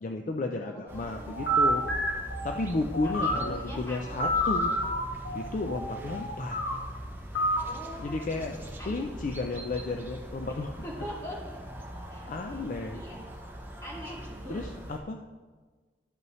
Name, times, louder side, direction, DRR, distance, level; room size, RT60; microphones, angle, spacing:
voice 1, 0.0-1.8 2.4-4.8 5.3-6.6 8.0-8.6 8.9-10.7 12.3-13.0 14.5-15.2, left 3 dB, 45° left, 4 dB, 0.4 m, -33 dB
voice 2, 0.6-1.9 3.0-4.3 7.6-9.3 10.8-11.6 12.1-12.6 12.9-13.3 13.8-14.7, equal, 15° left, -6 dB, 2.2 m, -43 dB
sound 1, 0.9-15.0, equal, 10° right, 0.7 m, -42 dB
sound 2, 1.3-3.6 4.2-6.7 7.3-7.6, equal, 80° left, 1.6 m, -28 dB
12.0 x 5.5 x 3.1 m, 1.4 s
head